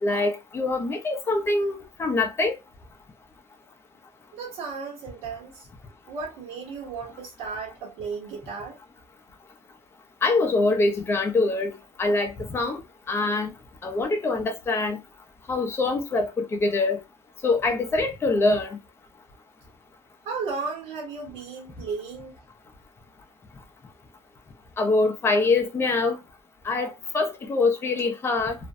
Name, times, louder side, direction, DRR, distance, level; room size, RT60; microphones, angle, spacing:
voice 1, 0.0-2.6 10.2-11.7 12.0-12.8 13.1-13.5 13.8-15.0 15.5-17.0 17.4-18.8 24.8-26.2 26.6-28.6, left 3 dB, 20° left, 0.5 m, -24 dB
voice 2, 4.3-5.7 6.1-8.8 20.2-22.3, right 4 dB, 75° right, 0.9 m, -34 dB
2.5 x 2.1 x 2.5 m
cardioid pair, 150°, 11 cm